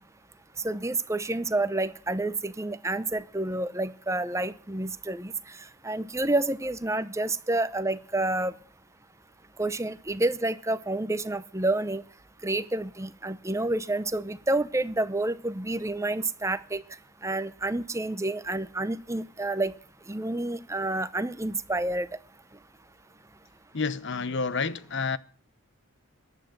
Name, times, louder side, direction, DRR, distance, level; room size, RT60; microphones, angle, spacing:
voice 1, 0.6-5.6 5.8-8.5 9.6-12.0 12.4-16.8 17.2-19.7 20.1-22.1, right 2 dB, 15° right, 0.7 m, -29 dB
voice 2, 23.7-25.2, left 4 dB, 55° left, 0.9 m, -29 dB
14.5 x 11.0 x 7.7 m
head